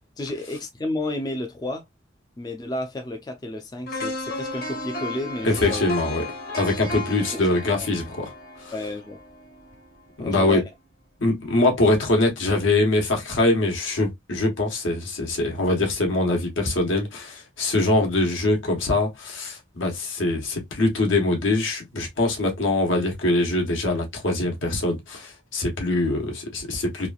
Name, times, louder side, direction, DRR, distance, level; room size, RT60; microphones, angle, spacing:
voice 1, 0.2-1.8 2.4-5.9 7.5-7.9 8.7-9.2 10.2-10.6, left 1 dB, 20° left, 0.3 m, -31 dB
sound 1, 3.9-9.9 10.3-10.4, left 2 dB, 50° left, 1.0 m, -34 dB
voice 2, 5.4-6.2 6.6-8.3 8.6-8.7 10.2-10.6 11.2-27.1, left 2 dB, 80° left, 1.1 m, -23 dB
3.1 x 2.4 x 2.3 m
head